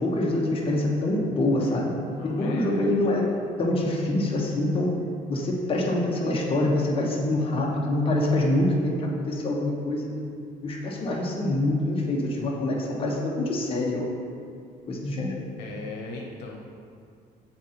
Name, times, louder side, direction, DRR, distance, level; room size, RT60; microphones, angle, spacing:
voice 1, 0.0-2.0 2.2-3.3 3.6-4.9 5.3-10.1 10.6-14.1 14.9-15.3, left 1 dB, 35° left, -3 dB, 1.1 m, -25 dB
voice 2, 2.1-3.0 15.6-16.6, left 3 dB, 80° left, -1 dB, 1.0 m, -38 dB
7.1 x 3.9 x 4.3 m, 2.3 s
cardioid pair, 110°, 17 cm